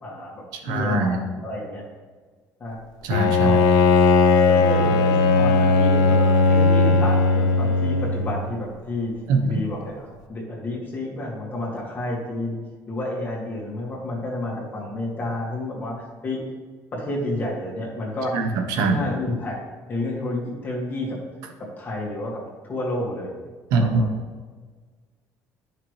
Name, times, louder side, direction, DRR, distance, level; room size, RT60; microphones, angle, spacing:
voice 1, 0.0-1.9 2.6-2.8 3.4-3.6 4.5-9.1 9.4-12.6 12.9-16.4 16.9-18.3 18.8-19.6 19.9-21.2 21.6-23.4 23.7-24.1, left 1 dB, 30° left, -3 dB, 2.2 m, -30 dB
voice 2, 0.6-1.2 3.0-3.6 9.3-9.6 18.3-19.0 23.7-24.0, right 3 dB, 90° right, 4 dB, 1.1 m, -22 dB
Bowed string instrument, 3.1-8.5, left 3 dB, 85° left, 0.7 m, -18 dB
10.5 x 6.0 x 3.3 m, 1.5 s
cardioid pair, 150°, 6 cm